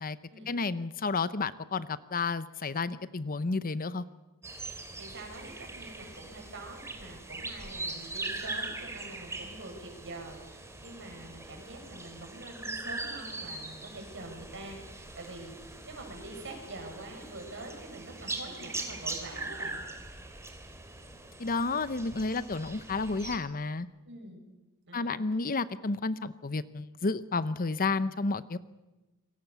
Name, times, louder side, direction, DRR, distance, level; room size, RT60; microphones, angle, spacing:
voice 1, 0.5-4.0 21.4-23.9 24.9-28.6, left 3 dB, 40° left, 14 dB, 0.8 m, -31 dB
sound 1, 4.4-23.3, right 2 dB, 15° right, 3.1 m, -41 dB
voice 2, 5.0-19.8 24.1-24.4 24.9-25.2, right 2 dB, 55° right, 3 dB, 7.2 m, -45 dB
28.0 x 23.5 x 7.0 m, 1.1 s
head